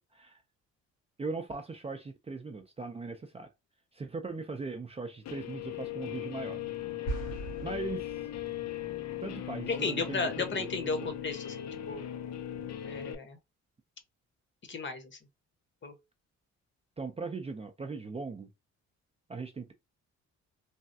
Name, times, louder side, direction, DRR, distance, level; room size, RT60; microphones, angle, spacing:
voice 1, 1.2-3.5 3.9-6.6 7.6-8.1 9.2-10.7 11.0-11.1 17.0-18.5 19.3-19.7, right 4 dB, 20° right, 0.4 m, -39 dB
Guitar, 5.2-13.1, left 11 dB, 60° left, 0.5 m, -39 dB
sound 1, 7.0-8.7, right 2 dB, 85° left, 2.0 m, -39 dB
voice 2, 9.7-12.0 12.8-13.4 14.7-15.2 15.8-15.9, left 4 dB, 40° left, 0.9 m, -34 dB
3.3 x 2.2 x 2.6 m
cardioid pair, 90°, 30 cm